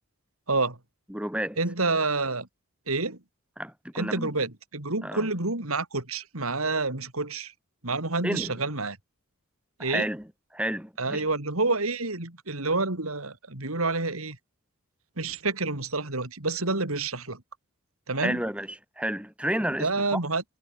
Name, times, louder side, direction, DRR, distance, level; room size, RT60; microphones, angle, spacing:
voice 1, 0.5-0.8 1.6-2.5 2.9-3.2 3.9-7.5 7.8-9.0 9.8-10.1 11.0-14.4 15.2-17.4 18.1-18.4 19.8-20.4, right 3 dB, 85° right, 4.0 m, -28 dB
voice 2, 1.1-1.6 3.6-4.3 5.0-5.3 8.2-8.5 9.8-10.2 10.5-11.2 18.2-18.7 19.0-20.2, right 1 dB, 5° right, 7.9 m, -31 dB
head